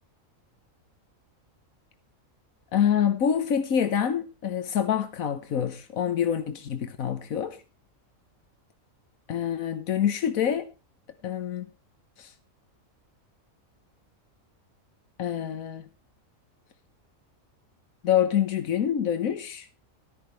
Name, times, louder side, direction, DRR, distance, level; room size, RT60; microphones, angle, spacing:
voice 1, 2.7-7.6 9.3-10.7 11.2-11.7 12.2-12.3 15.2-15.9 18.0-19.7, left 9 dB, 85° left, 1.5 m, -26 dB
14.0 x 13.0 x 3.3 m
omnidirectional pair, 1.4 m